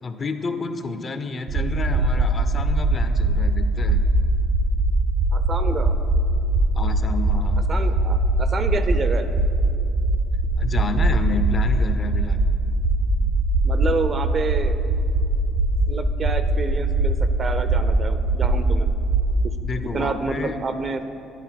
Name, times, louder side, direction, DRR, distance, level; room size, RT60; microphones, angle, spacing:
voice 1, 0.0-4.0 6.7-7.6 10.6-12.4 19.6-20.6, left 4 dB, 40° left, 9 dB, 0.5 m, -30 dB
sound 1, 1.5-19.3, right 2 dB, 75° right, 0.9 m, -21 dB
voice 2, 5.3-6.0 7.7-9.3 13.6-14.8 15.9-18.9 19.9-21.0, right 4 dB, 45° right, 9 dB, 0.6 m, -28 dB
9.9 x 4.0 x 5.8 m, 2.6 s
hypercardioid pair, 55°, 0 cm